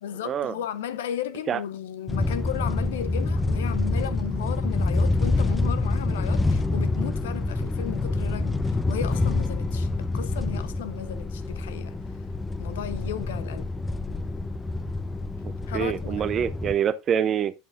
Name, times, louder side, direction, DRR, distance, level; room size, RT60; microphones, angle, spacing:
voice 1, 0.0-12.0 12.6-13.7 15.7-16.1, left 10 dB, 70° left, 0.6 m, -35 dB
sound 1, 2.1-16.7, left 2 dB, 15° left, 0.6 m, -27 dB
Acoustic guitar / Strum, 9.1-12.4, left 7 dB, 40° left, 1.4 m, -46 dB
voice 2, 15.7-17.5, right 8 dB, 35° right, 0.5 m, -25 dB
8.4 x 6.7 x 2.5 m
figure-of-eight pair, 75°, 0 cm